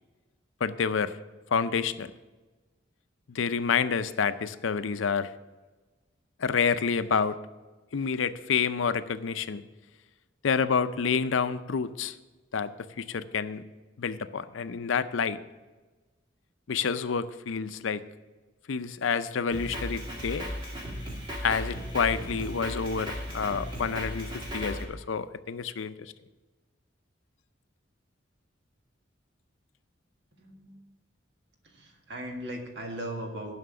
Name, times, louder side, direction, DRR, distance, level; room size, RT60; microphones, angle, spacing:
voice 1, 0.6-1.1 1.5-2.1 3.3-5.3 6.4-7.4 7.9-9.6 10.4-12.1 12.5-12.7 13.0-13.6 14.0-15.4 16.7-18.0 18.7-20.5 21.4-26.1, left 6 dB, 80° left, 12 dB, 0.5 m, -28 dB
Drum kit, 19.5-24.8, equal, 25° right, 1.9 m, -36 dB
voice 2, 30.3-30.9 31.6-33.5, right 1 dB, 65° right, 2 dB, 1.8 m, -38 dB
11.5 x 5.8 x 6.9 m, 1.2 s
head